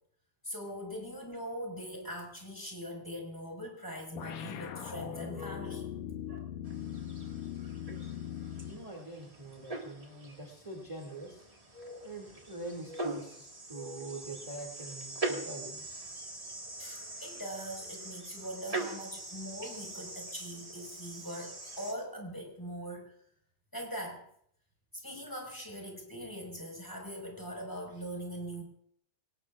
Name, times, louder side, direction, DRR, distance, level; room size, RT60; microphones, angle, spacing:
voice 1, 0.4-5.9 6.3-6.4 16.8-23.1 23.7-24.2 25.0-28.6, equal, 5° left, 1 dB, 4.5 m, -41 dB
sound 1, 4.2-8.9, left 9 dB, 80° left, 2.5 m, -40 dB
sound 2, 6.6-21.9, right 2 dB, 65° right, 0.3 m, -42 dB
voice 2, 8.7-11.4 12.0-16.0, right 2 dB, 10° right, -1 dB, 1.8 m, -44 dB
25.0 x 18.5 x 2.4 m, 0.67 s
omnidirectional pair, 3.6 m